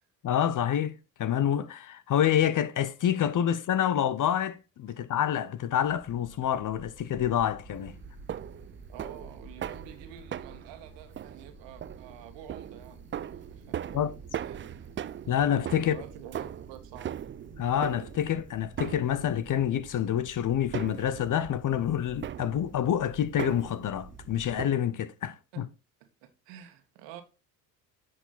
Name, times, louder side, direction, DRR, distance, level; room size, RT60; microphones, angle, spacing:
voice 1, 0.2-8.0 13.9-14.1 15.3-16.0 17.6-25.7, left 10 dB, 45° left, 0.8 m, -27 dB
sound 1, 5.8-24.5, right 2 dB, 20° left, 5.8 m, -51 dB
sound 2, 7.7-24.7, right 10 dB, 30° right, 0.4 m, -40 dB
voice 2, 8.9-13.1 13.5-14.0 14.4-14.9 15.8-17.1 25.2-25.6 26.0-27.2, right 10 dB, 70° right, 1.7 m, -48 dB
10.0 x 5.1 x 4.0 m
hypercardioid pair, 60°, 44 cm